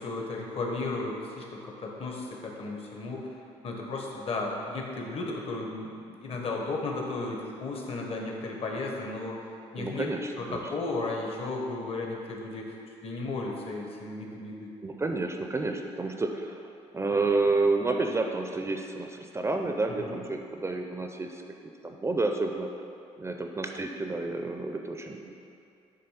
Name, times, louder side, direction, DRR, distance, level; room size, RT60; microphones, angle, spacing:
voice 1, 0.0-3.4 3.6-10.1 10.4-12.8 13.0-14.7 20.0-20.2, left 3 dB, 50° left, 0 dB, 1.1 m, -34 dB
voice 2, 9.8-10.7 14.8-16.7 16.9-21.4 21.8-22.7 23.2-25.3, right 3 dB, 20° right, 4 dB, 0.5 m, -30 dB
7.7 x 3.2 x 5.8 m, 2.5 s
supercardioid pair, 80°, 13 cm